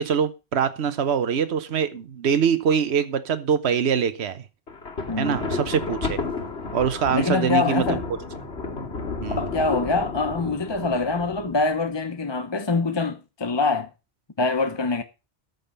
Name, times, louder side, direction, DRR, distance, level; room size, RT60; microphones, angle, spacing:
voice 1, 0.0-4.4 5.2-6.2 6.7-7.8 9.2-9.4, right 7 dB, 70° right, 1.2 m, -23 dB
Thunder, 4.7-11.9, left 3 dB, 75° left, 2.7 m, -32 dB
voice 2, 5.1-5.5 7.1-8.1 9.3-13.9 14.4-15.0, left 3 dB, 25° left, 0.8 m, -24 dB
13.5 x 5.3 x 6.7 m
omnidirectional pair, 1.1 m